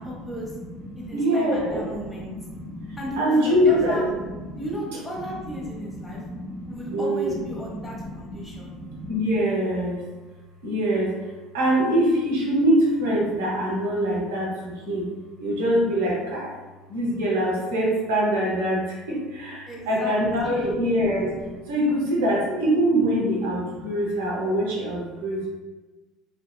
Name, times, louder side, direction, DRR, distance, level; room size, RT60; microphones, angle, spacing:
voice 1, 0.0-0.5 1.0-2.3 3.0-4.0 4.5-6.2 6.7-8.7 19.7-20.1 20.4-20.8, equal, 20° left, -4 dB, 0.8 m, -35 dB
voice 2, 0.6-1.9 2.2-4.0 4.4-4.6 5.6-10.0 10.6-15.1 15.4-16.5 16.9-25.5, equal, 80° right, -4 dB, 0.7 m, -24 dB
2.6 x 2.2 x 2.2 m, 1.2 s
hypercardioid pair, 70°, 0 cm